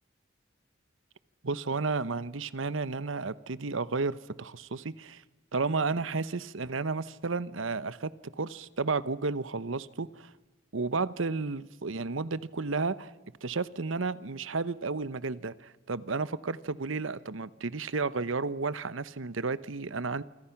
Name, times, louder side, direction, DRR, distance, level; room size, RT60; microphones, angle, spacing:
voice 1, 1.4-5.2 5.5-8.1 8.4-10.3 10.7-13.1 13.4-20.2, right 4 dB, 90° right, 0.9 m, -32 dB
27.5 x 25.5 x 5.9 m
head